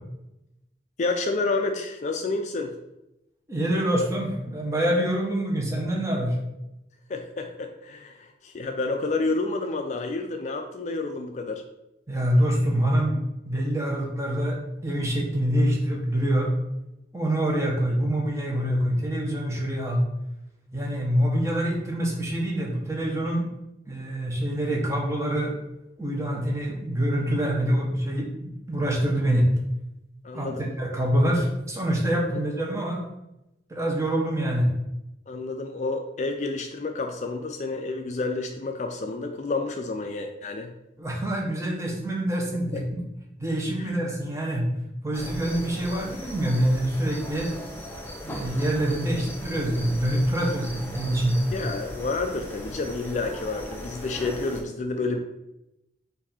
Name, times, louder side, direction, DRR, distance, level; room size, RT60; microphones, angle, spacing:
voice 1, 1.0-2.7 7.1-11.6 30.2-30.7 35.3-40.7 42.7-42.8 43.8-43.9 51.5-55.2, left 3 dB, 40° left, 5 dB, 0.3 m, -29 dB
voice 2, 3.5-6.3 12.1-13.2 13.5-14.6 14.8-16.5 17.1-20.0 20.7-23.5 23.9-25.5 26.0-29.5 30.3-33.0 33.7-34.7 41.0-42.8 43.4-44.7 45.0-47.6 48.2-51.5, right 1 dB, 15° right, -1 dB, 0.9 m, -25 dB
sound 1, 45.1-54.6, equal, 10° left, 0.7 m, -38 dB
4.8 x 2.6 x 4.1 m, 0.89 s
head